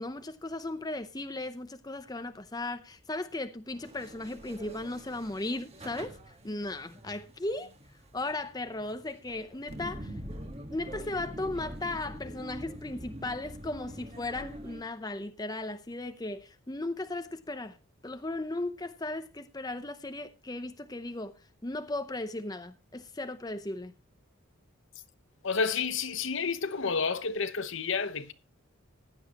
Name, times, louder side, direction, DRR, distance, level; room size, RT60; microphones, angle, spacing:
voice 1, 0.0-6.2 6.4-7.7 8.1-10.1 10.7-17.8 18.0-21.3 21.6-23.9, left 2 dB, 20° left, 0.7 m, -36 dB
sound 1, 3.7-14.8, equal, 30° right, 1.5 m, -45 dB
voice 2, 25.4-28.3, left 5 dB, 65° left, 0.9 m, -30 dB
15.5 x 11.0 x 2.9 m
head